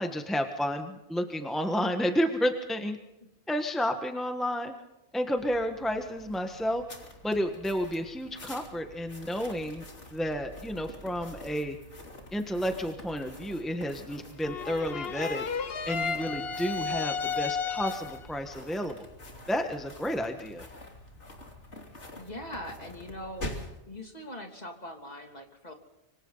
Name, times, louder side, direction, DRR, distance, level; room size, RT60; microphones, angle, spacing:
voice 1, 0.0-3.0 3.5-4.7 5.1-6.8 7.2-9.8 10.1-11.8 12.3-15.4 15.9-19.0 19.5-20.6, equal, ahead, 5 dB, 1.5 m, -31 dB
sound 1, 5.4-23.8, left 1 dB, 80° left, 3.5 m, -46 dB
sound 2, 14.4-18.3, left 5 dB, 60° left, 1.2 m, -33 dB
voice 2, 22.1-23.5 23.9-25.7, left 1 dB, 35° left, 3 dB, 3.0 m, -41 dB
25.5 x 25.5 x 4.1 m, 0.92 s
omnidirectional pair, 1.2 m